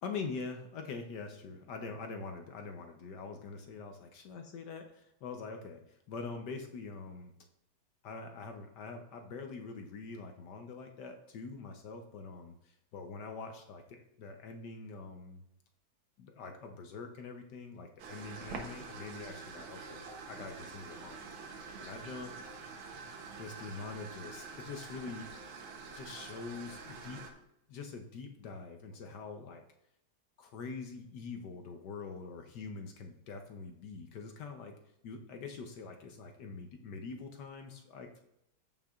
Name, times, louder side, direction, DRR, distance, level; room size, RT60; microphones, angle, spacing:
voice 1, 0.0-4.9 5.2-7.3 8.0-15.4 16.2-21.3 21.8-22.3 23.4-25.3 25.9-27.2 27.7-29.6 30.4-34.8 35.0-38.2, left 4 dB, 65° left, 5 dB, 1.2 m, -44 dB
sound 1, 18.0-27.3, right 4 dB, 80° right, 1.7 m, -46 dB
14.0 x 5.6 x 2.4 m, 0.82 s
omnidirectional pair, 2.2 m